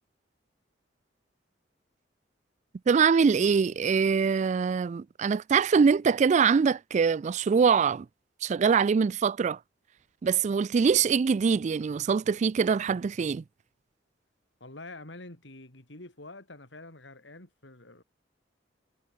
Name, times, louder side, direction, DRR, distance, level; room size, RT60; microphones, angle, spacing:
voice 1, 2.9-8.1 8.4-9.6 10.2-13.4, right 6 dB, 40° right, 0.3 m, -23 dB
voice 2, 14.6-18.0, left 2 dB, 70° left, 3.9 m, -46 dB
head